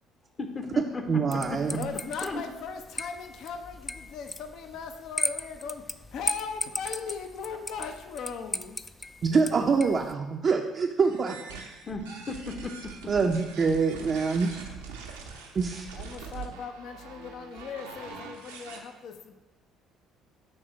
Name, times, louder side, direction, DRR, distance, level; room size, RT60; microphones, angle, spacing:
voice 1, 0.4-1.8 2.2-2.4 11.9-13.1, left 3 dB, 35° left, 5 dB, 0.9 m, -36 dB
voice 2, 1.1-1.9 9.2-11.4 13.1-14.5 15.6-15.9, right 5 dB, 45° right, 1 dB, 0.5 m, -25 dB
sound 1, 1.3-10.2, left 2 dB, 15° left, 0.3 m, -37 dB
voice 3, 1.7-8.8 15.9-19.4, left 6 dB, 60° left, 6 dB, 0.6 m, -38 dB
sound 2, 11.0-18.8, right 5 dB, 85° right, 0.7 m, -43 dB
6.5 x 3.5 x 4.5 m, 1.1 s
hypercardioid pair, 55°, 0 cm